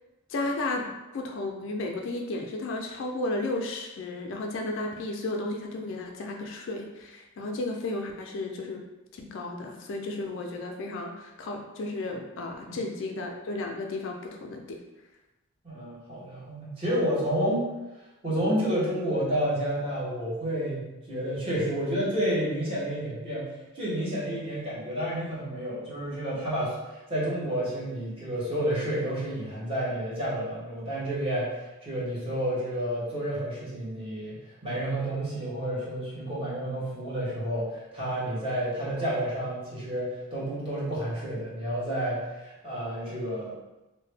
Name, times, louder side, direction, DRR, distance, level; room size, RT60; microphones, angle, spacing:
voice 1, 0.3-0.8 1.1-8.8 9.1-14.8 21.1-21.2, left 2 dB, 65° left, 2 dB, 0.4 m, -33 dB
voice 2, 15.6-17.7 18.2-23.5 23.7-26.7 27.1-34.3 34.6-43.5, equal, 25° right, -9 dB, 1.1 m, -30 dB
2.7 x 2.1 x 3.2 m, 1.0 s
head